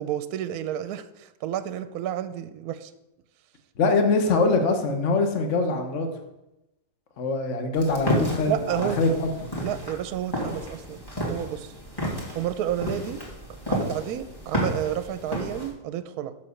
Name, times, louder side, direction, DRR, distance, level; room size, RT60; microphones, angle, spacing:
voice 1, 0.0-2.9 8.5-9.0 9.6-11.7 12.3-13.2 13.7-16.3, right 11 dB, 75° right, 11 dB, 1.0 m, -30 dB
voice 2, 3.8-6.1 7.2-9.3, left 3 dB, 50° left, 5 dB, 1.3 m, -23 dB
sound 1, 7.7-15.7, equal, 15° left, 2.1 m, -31 dB
7.6 x 5.7 x 6.4 m, 0.94 s
omnidirectional pair, 1.7 m